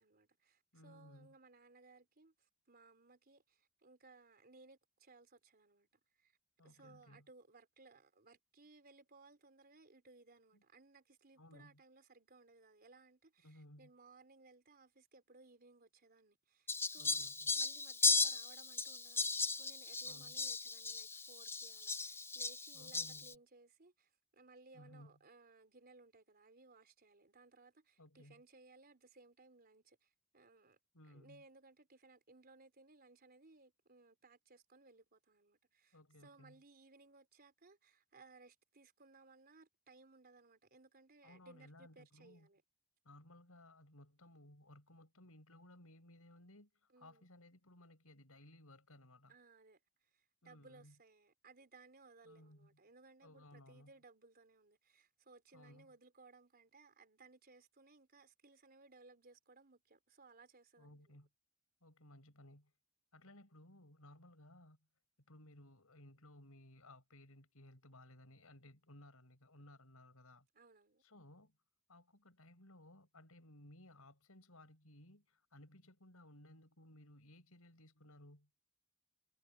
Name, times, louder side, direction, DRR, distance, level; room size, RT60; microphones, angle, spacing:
voice 1, 0.0-6.4 6.6-17.2 17.6-30.8 31.1-42.6 46.9-47.3 49.3-61.2 70.5-71.0, right 3 dB, 45° right, 4.1 m, -63 dB
voice 2, 0.7-1.3 6.6-7.3 10.5-10.6 11.4-11.8 13.4-13.9 17.0-17.6 20.0-20.4 22.7-23.3 24.7-25.1 28.0-28.4 30.9-31.4 35.9-36.6 41.2-42.5 43.0-46.7 47.0-49.3 50.4-50.9 52.2-52.7 53.2-53.9 55.5-55.9 60.8-61.3 61.8-62.7 63.1-64.8 65.3-70.5 71.0-71.5 71.9-78.5, left 1 dB, 75° left, 6.6 m, -60 dB
Fowl, 16.7-23.3, left 4 dB, 10° left, 0.5 m, -37 dB
head